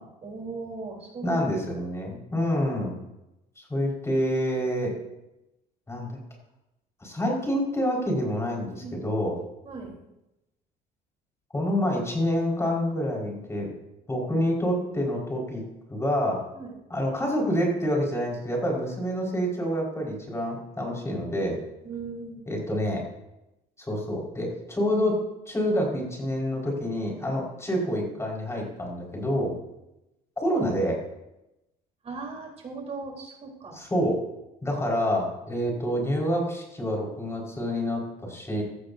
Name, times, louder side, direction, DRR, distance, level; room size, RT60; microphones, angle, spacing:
voice 1, 0.2-1.4 2.1-2.2 8.8-9.1 9.6-9.9 16.5-16.8 20.9-21.0 21.8-22.4 32.0-33.8, right 3 dB, 40° right, -1 dB, 3.9 m, -38 dB
voice 2, 1.2-3.0 3.6-4.9 5.9-6.1 7.0-9.4 11.5-13.7 14.1-15.6 15.9-16.4 16.9-21.6 22.5-23.0 23.8-25.2 25.5-29.5 30.4-31.0 33.7-34.2 34.6-38.6, equal, 15° left, -2 dB, 5.0 m, -27 dB
15.5 x 14.5 x 2.7 m, 0.94 s
cardioid pair, 110°, 17 cm